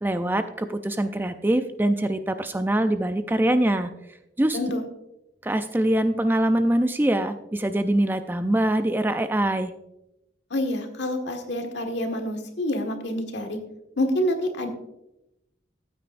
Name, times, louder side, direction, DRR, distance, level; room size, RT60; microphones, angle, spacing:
voice 1, 0.0-3.9 4.4-4.6 5.4-9.7, right 1 dB, 10° right, 9 dB, 0.3 m, -23 dB
voice 2, 4.5-4.8 10.5-13.6 14.0-14.7, left 1 dB, 70° left, 4 dB, 1.6 m, -27 dB
14.5 x 9.0 x 2.5 m, 0.88 s
head